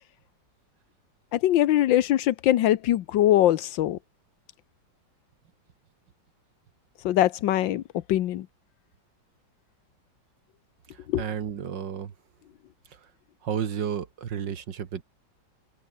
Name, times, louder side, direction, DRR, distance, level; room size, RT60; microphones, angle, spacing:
voice 1, 1.3-4.0 7.0-7.8 8.1-8.5 11.1-11.2, left 13 dB, 85° left, 1.5 m, -22 dB
voice 2, 10.9-12.1 13.4-15.0, right 8 dB, 75° right, 2.2 m, -32 dB
omnidirectional pair, 2.0 m